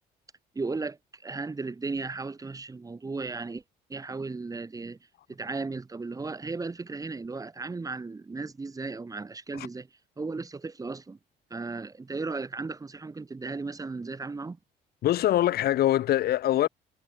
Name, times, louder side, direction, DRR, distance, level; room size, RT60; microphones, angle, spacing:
voice 1, 0.6-3.6 3.9-5.0 5.3-9.9 10.2-11.2 11.5-14.6, right 3 dB, 20° right, 3.6 m, -35 dB
voice 2, 15.0-16.7, left 13 dB, 65° left, 5.7 m, -23 dB
cardioid pair, 110°, 17 cm